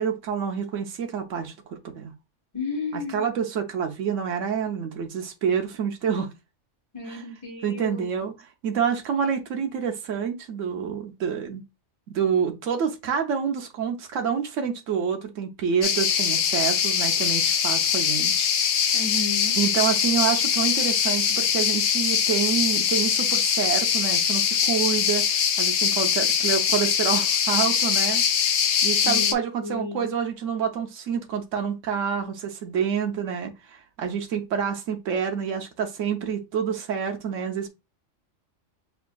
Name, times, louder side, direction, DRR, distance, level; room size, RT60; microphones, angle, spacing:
voice 1, 0.0-2.1 2.9-6.3 7.6-8.3 8.6-11.6 12.1-18.9 19.6-25.2 25.6-28.5 28.8-37.7, right 7 dB, 85° right, 1.1 m, -28 dB
voice 2, 2.5-3.2 6.9-8.1 18.9-19.6 29.0-29.3 29.6-30.1, left 3 dB, 25° left, 1.0 m, -32 dB
sound 1, 15.8-29.3, left 7 dB, 70° left, 0.8 m, -22 dB
6.6 x 2.5 x 2.3 m
omnidirectional pair, 1.3 m